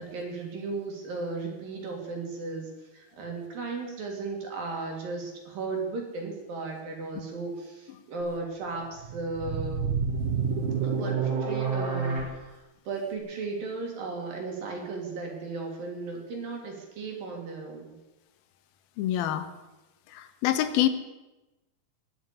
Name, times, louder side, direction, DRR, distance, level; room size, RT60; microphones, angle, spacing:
voice 1, 0.0-9.9 10.8-17.9, right 3 dB, 70° right, 0 dB, 4.9 m, -35 dB
sound 1, 8.9-12.2, right 5 dB, 90° right, 7.0 m, -28 dB
voice 2, 19.0-19.5 20.1-20.9, left 12 dB, 80° left, 10 dB, 2.8 m, -26 dB
21.5 x 7.8 x 8.6 m, 1.1 s
omnidirectional pair, 4.2 m